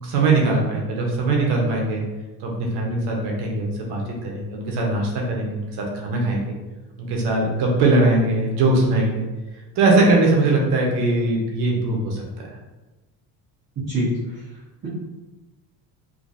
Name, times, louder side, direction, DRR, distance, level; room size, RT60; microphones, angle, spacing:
voice 1, 0.0-2.0 2.4-6.6 7.0-9.3 9.8-12.5, right 2 dB, 80° right, -1 dB, 1.0 m, -21 dB
voice 2, 13.9-14.4, equal, 40° right, -10 dB, 1.2 m, -24 dB
3.8 x 2.7 x 2.6 m, 1.1 s
cardioid pair, 155°, 40 cm